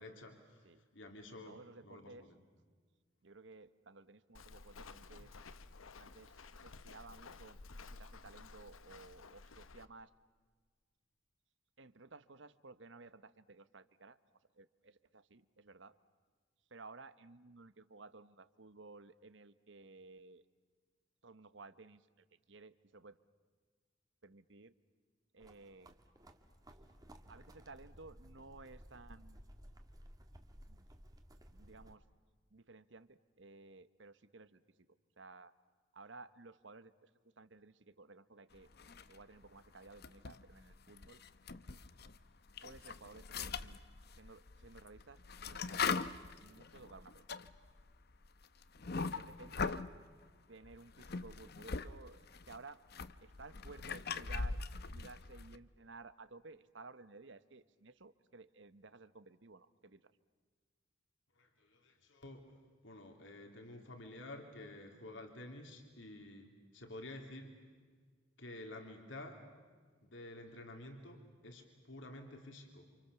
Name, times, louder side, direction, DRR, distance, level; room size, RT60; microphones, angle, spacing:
voice 1, 0.0-2.4 38.8-38.9 49.0-49.1 61.4-62.6 62.8-67.7 68.4-69.4 70.0-73.1, left 1 dB, 70° left, 4 dB, 3.2 m, -51 dB
voice 2, 1.4-2.3 3.2-5.4 6.0-7.6 7.9-10.1 11.8-14.2 14.5-16.0 16.7-20.4 21.2-23.2 24.2-24.7 25.3-25.9 27.3-29.4 30.7-30.9 31.5-32.0 32.5-34.6 35.2-35.5 35.9-37.1 37.4-38.7 39.1-41.2 42.6-43.8 44.1-45.9 46.4-47.2 48.9-49.9 50.5-52.8 53.2-54.6 54.9-60.1, right 3 dB, 60° right, 14 dB, 1.1 m, -56 dB
Walk footsteps, 4.3-9.8, left 3 dB, 90° left, 1.0 m, -54 dB
sound 1, 25.4-32.0, equal, 20° right, 1.8 m, -57 dB
sound 2, 38.7-39.4 39.9-42.2 42.5-49.9 50.6-51.9 52.1-55.6, left 4 dB, 50° left, 0.8 m, -41 dB
29.5 x 27.5 x 7.0 m, 1.5 s
head